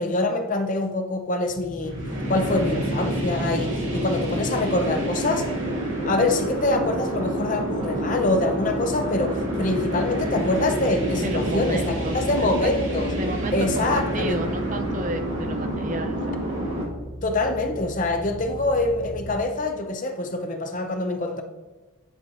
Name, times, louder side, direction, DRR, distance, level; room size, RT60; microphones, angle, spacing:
voice 1, 0.0-2.0 2.3-5.5 6.1-13.1 13.5-14.4 17.2-21.4, left 2 dB, 35° left, 5 dB, 0.6 m, -25 dB
sound 1, 1.4-19.4, equal, ahead, 1.9 m, -33 dB
sound 2, 1.9-16.8, right 1 dB, 70° right, 2.3 m, -29 dB
voice 2, 11.2-12.1 13.2-16.2 16.5-16.8 17.4-17.5, right 2 dB, 35° right, 8 dB, 0.5 m, -32 dB
10.0 x 4.3 x 3.0 m, 1.2 s
head